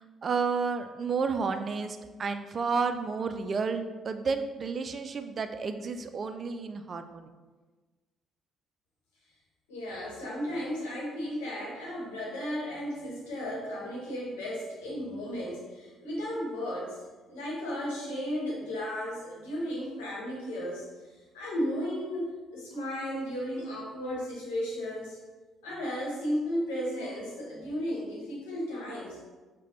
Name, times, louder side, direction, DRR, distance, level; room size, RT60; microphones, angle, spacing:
voice 1, 0.2-7.3, right 5 dB, 40° right, 8 dB, 0.3 m, -31 dB
voice 2, 9.7-20.9 21.3-25.2 25.6-29.2, equal, 70° left, -5 dB, 1.0 m, -34 dB
5.6 x 2.2 x 3.0 m, 1.3 s
figure-of-eight pair, 45°, 0 cm